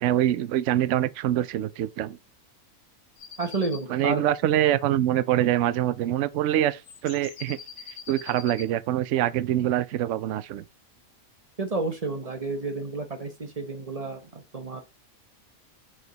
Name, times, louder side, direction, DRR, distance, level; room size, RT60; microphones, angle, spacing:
voice 1, 0.0-2.2 3.9-7.6 8.1-10.6, right 12 dB, 65° right, 0.8 m, -24 dB
sound 1, 3.2-3.9 6.8-8.7, left 7 dB, 55° left, 1.0 m, -43 dB
voice 2, 3.4-4.2 11.6-14.8, right 3 dB, 30° right, 0.8 m, -31 dB
5.0 x 4.8 x 3.9 m
omnidirectional pair, 1.5 m